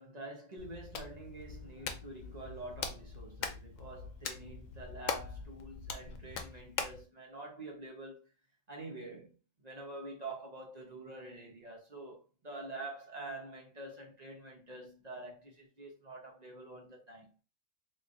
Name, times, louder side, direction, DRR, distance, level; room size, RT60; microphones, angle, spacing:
voice 1, 0.0-8.3 8.7-9.4 9.6-17.3, right 2 dB, 35° right, 1.1 m, -47 dB
Hands, 0.6-7.0, left 6 dB, 75° left, 1.0 m, -42 dB
3.7 x 3.3 x 2.6 m
omnidirectional pair, 1.4 m